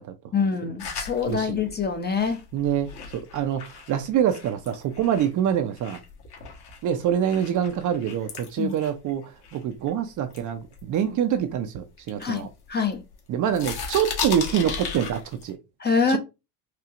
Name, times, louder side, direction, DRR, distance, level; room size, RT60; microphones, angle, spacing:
voice 1, 0.3-2.4 8.6-8.7 12.2-13.0 15.8-16.2, left 5 dB, 20° left, 0.7 m, -25 dB
sound 1, 0.8-5.4 5.8-9.9 10.3-11.5 12.0-13.2 13.5-15.5, left 6 dB, 50° left, 1.5 m, -36 dB
voice 2, 1.3-1.6 2.5-6.0 6.8-12.5 13.3-15.6 16.1-16.2, right 9 dB, 40° right, 0.6 m, -25 dB
4.4 x 2.6 x 2.5 m
hypercardioid pair, 80°, 50 cm